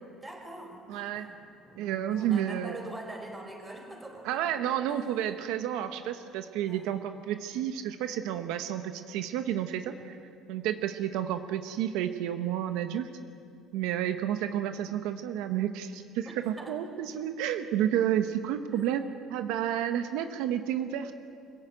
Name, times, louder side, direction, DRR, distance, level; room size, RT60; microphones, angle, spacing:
voice 1, 0.2-5.1 6.7-6.9 9.8-10.0 14.8-15.0 16.2-16.8, right 1 dB, 10° right, 2 dB, 4.9 m, -45 dB
voice 2, 0.9-1.3 1.8-2.8 4.2-10.2 10.5-13.1 13.7-21.1, right 10 dB, 85° right, 8 dB, 1.1 m, -31 dB
24.5 x 16.0 x 9.2 m, 2.4 s
cardioid pair, 125°, 0 cm